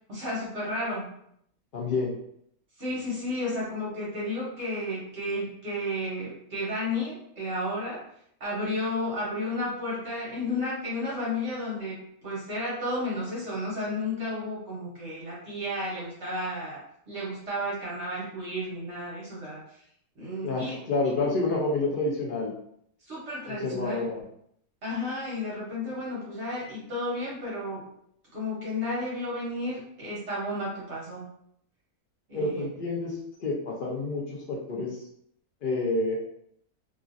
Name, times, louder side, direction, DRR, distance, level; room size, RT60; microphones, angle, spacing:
voice 1, 0.1-1.1 2.8-8.0 8.4-16.8 17.1-19.6 20.2-20.8 23.1-24.1 24.8-27.9 28.3-31.3 32.3-32.7, left 1 dB, 50° right, -7 dB, 1.1 m, -32 dB
voice 2, 1.7-2.1 20.4-22.5 23.5-24.2 32.3-35.0 35.6-36.2, left 2 dB, 75° left, -4 dB, 0.4 m, -29 dB
2.9 x 2.4 x 2.5 m, 0.71 s
omnidirectional pair, 1.6 m